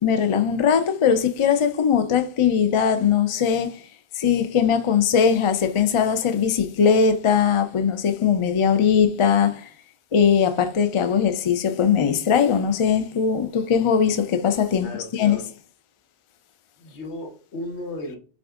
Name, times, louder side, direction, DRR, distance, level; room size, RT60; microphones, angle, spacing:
voice 1, 0.0-3.8 4.2-9.7 10.1-15.4, left 7 dB, 45° left, 0.4 m, -20 dB
voice 2, 14.8-15.5 16.8-18.2, left 1 dB, 80° left, 1.3 m, -35 dB
6.1 x 2.4 x 3.6 m
omnidirectional pair, 1.2 m